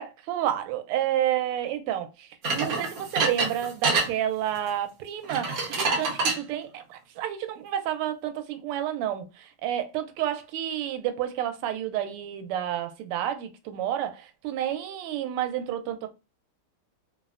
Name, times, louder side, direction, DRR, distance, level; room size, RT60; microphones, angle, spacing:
voice 1, 0.0-16.1, right 11 dB, 85° right, 1.5 m, -30 dB
sound 1, 2.4-4.1 5.2-6.4, right 3 dB, 60° right, 0.9 m, -26 dB
3.5 x 2.1 x 2.4 m
omnidirectional pair, 2.4 m